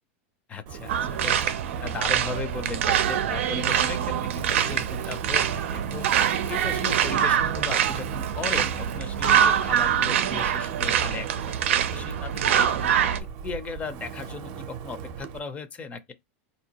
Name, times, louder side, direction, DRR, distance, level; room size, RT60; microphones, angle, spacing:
voice 1, 0.5-1.5 1.8-6.1 6.5-11.5 11.8-12.3 12.8-12.9 13.4-16.1, left 4 dB, 20° left, 0.5 m, -37 dB
Wind, 0.7-15.4, right 7 dB, 50° right, 0.6 m, -39 dB
sound 1, 0.9-13.2, right 9 dB, 90° right, 0.5 m, -24 dB
4.3 x 2.7 x 2.8 m
supercardioid pair, 145°, 7 cm